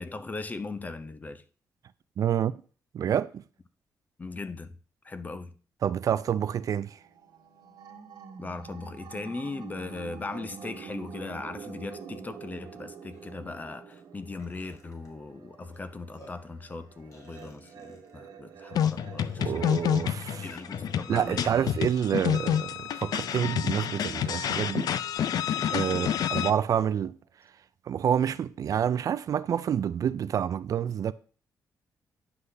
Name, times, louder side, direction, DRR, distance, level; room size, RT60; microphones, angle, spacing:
voice 1, 0.0-1.4 4.2-4.8 5.0-5.5 8.4-19.8 20.4-21.7 25.9-26.1, left 3 dB, 25° left, 0.6 m, -39 dB
voice 2, 2.2-2.5 2.9-3.4 5.8-7.0 19.4-20.5 21.1-24.9 25.7-27.2 27.9-31.1, right 9 dB, 55° right, 0.3 m, -28 dB
sound 1, 6.9-26.0, right 6 dB, 85° right, 1.2 m, -48 dB
Burping eructation, 12.6-12.7 13.1-13.3 13.9-14.0 14.4-15.1 15.7-15.8 16.1-16.5 17.1-18.1 18.8-18.9 19.2-19.7 20.5-20.8 22.3-23.2 24.1-24.2 24.6-24.7 25.7-27.0, left 1 dB, 50° left, 2.0 m, -54 dB
sound 2, 18.7-26.5, left 9 dB, 70° left, 0.4 m, -28 dB
9.6 x 5.6 x 3.3 m
cardioid pair, 120°, 7 cm